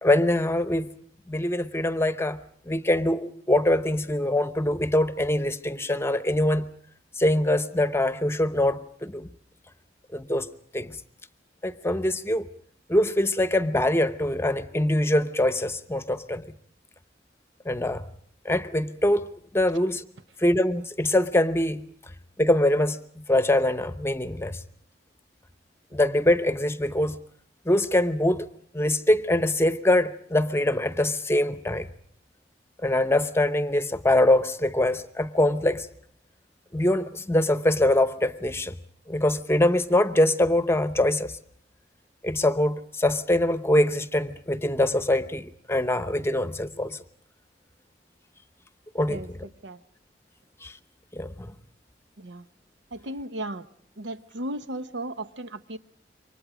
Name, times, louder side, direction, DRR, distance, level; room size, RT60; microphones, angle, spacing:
voice 1, 0.0-0.9 1.3-2.4 2.7-6.7 7.2-9.3 10.1-10.5 10.7-10.9 11.6-12.5 12.9-16.5 17.7-18.0 18.4-19.3 19.5-20.0 20.4-21.8 22.4-24.6 25.9-27.2 27.7-28.4 28.7-31.9 32.8-35.9 36.7-38.7 39.1-41.3 42.2-47.0 48.9-49.2 50.6-50.7 51.1-51.5, left 1 dB, 15° left, 0.9 m, -23 dB
voice 2, 52.9-53.7 54.0-55.8, right 1 dB, 80° right, 1.0 m, -35 dB
28.0 x 24.0 x 5.0 m
head